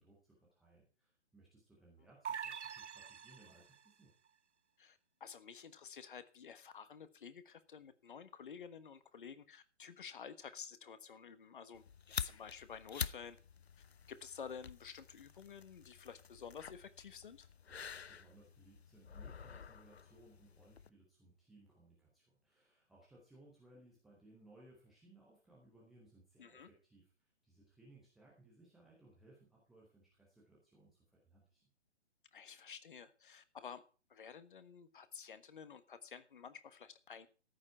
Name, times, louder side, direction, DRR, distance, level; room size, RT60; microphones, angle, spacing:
voice 1, 0.0-4.1 17.7-31.6, right 2 dB, ahead, -5 dB, 0.5 m, -64 dB
sound 1, 2.2-3.9, right 7 dB, 75° right, 0.6 m, -45 dB
voice 2, 4.8-11.8 12.2-13.4 14.1-17.5 26.4-26.7 32.3-33.8 34.1-37.3, left 7 dB, 45° left, 12 dB, 1.4 m, -51 dB
sound 2, 11.7-20.9, left 7 dB, 60° left, 0.8 m, -48 dB
14.0 x 9.9 x 4.5 m, 0.37 s
figure-of-eight pair, 135°, 35 cm